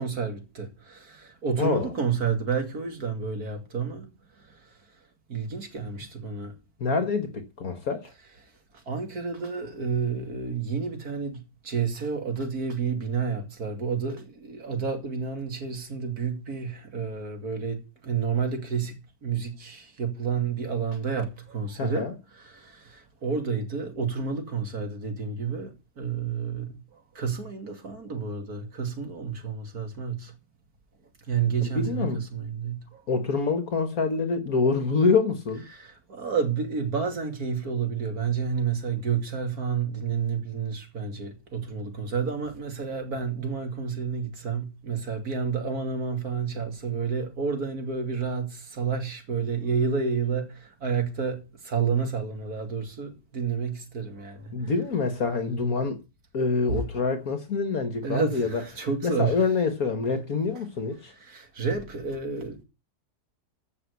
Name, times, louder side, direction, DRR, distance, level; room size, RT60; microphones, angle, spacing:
voice 1, 0.0-4.7 5.3-6.5 8.7-22.1 22.3-30.3 31.3-33.0 35.7-54.7 56.7-56.8 58.0-59.4 61.2-62.6, right 6 dB, 60° right, 3.0 m, -30 dB
voice 2, 1.6-1.9 6.8-8.1 21.8-22.1 31.6-32.2 33.1-35.6 54.5-56.0 56.3-61.1, left 4 dB, 55° left, 1.7 m, -26 dB
15.0 x 6.1 x 8.1 m
omnidirectional pair, 1.8 m